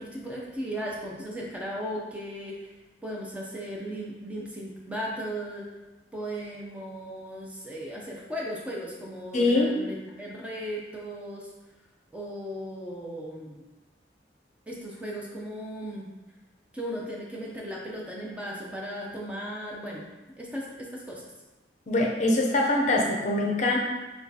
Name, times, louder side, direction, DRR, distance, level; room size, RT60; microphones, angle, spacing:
voice 1, 0.0-2.7 3.0-5.7 6.1-11.5 12.1-13.6 14.7-16.1 16.7-20.1 20.4-21.3, equal, 10° right, -4 dB, 0.5 m, -36 dB
voice 2, 9.3-9.8 21.9-23.8, left 2 dB, 45° left, 0 dB, 0.6 m, -23 dB
6.0 x 2.3 x 2.8 m, 1.1 s
head